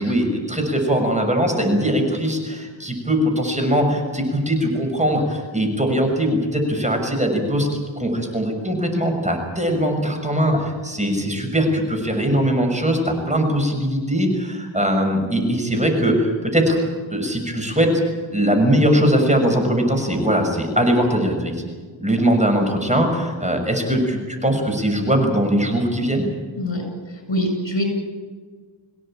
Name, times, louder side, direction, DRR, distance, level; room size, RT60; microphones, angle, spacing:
voice 1, 0.0-16.8 17.1-18.0 18.3-21.6 22.0-26.3, equal, 15° right, 3 dB, 6.3 m, -20 dB
voice 2, 27.3-27.8, equal, 75° left, 4 dB, 7.8 m, -23 dB
24.5 x 17.0 x 8.9 m, 1.5 s
wide cardioid pair, 70°, 46 cm